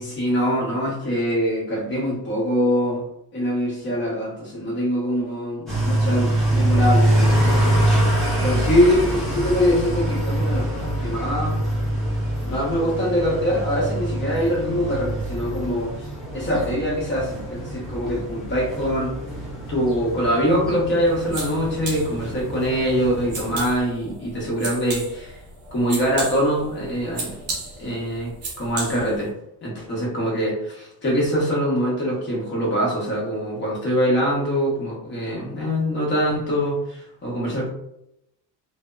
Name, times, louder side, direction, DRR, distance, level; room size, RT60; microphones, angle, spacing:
voice 1, 0.0-3.1 3.3-7.8 8.4-11.6 12.4-19.2 19.7-25.4 25.7-27.4 27.8-28.3 28.6-29.3 29.6-37.7, equal, 30° left, -4 dB, 0.9 m, -23 dB
sound 1, 5.7-23.7, right 1 dB, ahead, 0.6 m, -24 dB
sound 2, 21.0-29.3, right 3 dB, 40° right, 0.6 m, -35 dB
2.7 x 2.0 x 2.2 m, 0.79 s
cardioid pair, 170°, 39 cm